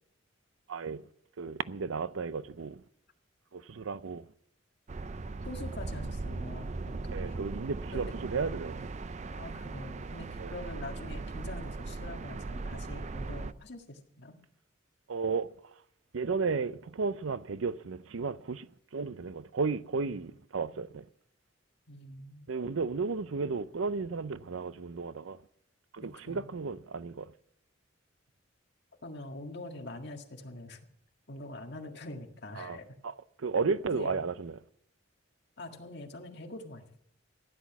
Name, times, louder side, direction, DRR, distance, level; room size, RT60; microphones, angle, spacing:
voice 1, 0.7-1.0 1.4-2.8 3.5-4.2 7.1-8.9 10.4-10.6 15.1-15.5 16.1-21.0 22.5-25.4 25.9-27.3 32.6-32.8 33.0-34.6, right 4 dB, 90° right, 0.6 m, -34 dB
sound 1, 4.9-13.5, right 3 dB, 35° right, 0.5 m, -38 dB
voice 2, 5.4-7.4 7.9-8.0 9.3-14.4 20.0-20.2 21.9-22.5 26.3-26.5 29.0-30.8 31.3-33.0 33.5-34.2 35.6-37.0, left 1 dB, 60° left, 1.8 m, -44 dB
15.5 x 10.5 x 6.0 m
head